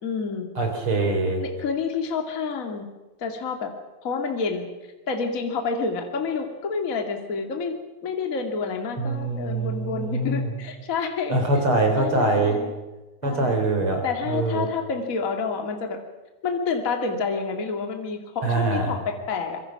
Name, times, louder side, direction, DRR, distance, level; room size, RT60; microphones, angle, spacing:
voice 1, 0.0-0.5 1.4-2.9 3.2-3.7 4.0-7.8 8.0-11.4 12.0-12.7 13.2-13.6 14.0-16.0 16.4-19.6, left 5 dB, 25° left, 3 dB, 2.2 m, -28 dB
voice 2, 0.6-1.4 9.0-10.5 11.3-12.6 13.2-14.7 18.4-18.9, right 2 dB, 35° right, 4 dB, 4.8 m, -23 dB
25.0 x 23.5 x 6.0 m, 1.1 s
omnidirectional pair, 4.0 m